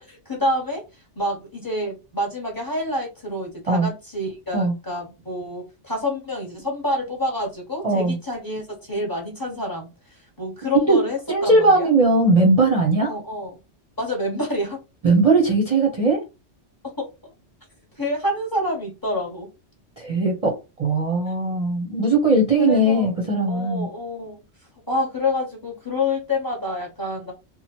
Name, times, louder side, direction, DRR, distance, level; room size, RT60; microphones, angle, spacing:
voice 1, 0.1-11.9 13.0-13.6 14.0-14.8 16.8-17.3 17.9-19.5 22.6-23.2 23.4-24.4 24.9-27.3, left 1 dB, 20° left, 1.0 m, -28 dB
voice 2, 7.8-8.2 10.9-11.0 11.3-13.1 15.0-16.2 20.0-23.9, right 2 dB, 40° right, 0.6 m, -19 dB
3.1 x 2.2 x 2.9 m
omnidirectional pair, 1.2 m